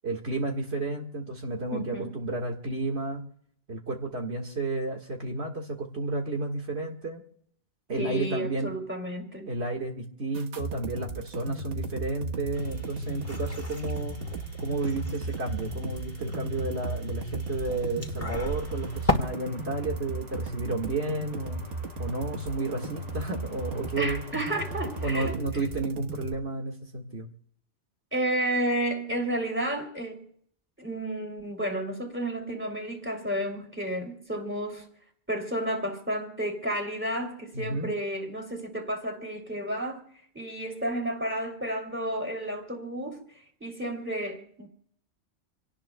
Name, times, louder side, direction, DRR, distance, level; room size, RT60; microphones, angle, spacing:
voice 1, 0.0-3.3 3.7-7.2 7.9-8.7 9.5-14.2 14.6-21.6 22.0-24.2 25.0-27.3 37.5-37.9, right 2 dB, 70° right, 2.1 m, -32 dB
voice 2, 1.7-2.1 8.0-9.5 24.0-25.3 28.1-30.2 30.8-34.9 35.3-40.0 40.3-43.2 43.6-44.7, right 1 dB, 10° right, 2.9 m, -31 dB
sound 1, 10.3-26.3, right 2 dB, 85° right, 1.6 m, -36 dB
sound 2, 12.5-19.1, equal, 15° left, 1.7 m, -35 dB
sound 3, 18.4-25.4, equal, 45° right, 6.2 m, -48 dB
27.0 x 18.0 x 2.3 m
omnidirectional pair, 1.2 m